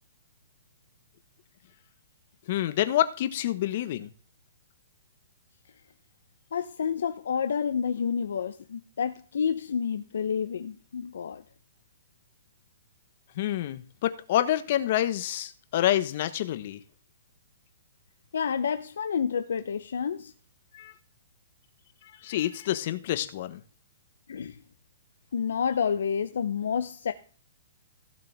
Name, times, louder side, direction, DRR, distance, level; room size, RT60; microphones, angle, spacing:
voice 1, 2.5-4.1 13.4-16.8 20.7-20.9 22.2-23.6, left 12 dB, 50° left, 1.2 m, -27 dB
voice 2, 6.5-11.4 18.3-20.3 24.3-24.5 25.3-27.1, left 7 dB, 75° left, 0.8 m, -29 dB
16.0 x 6.8 x 3.5 m
hypercardioid pair, 130°, 0 cm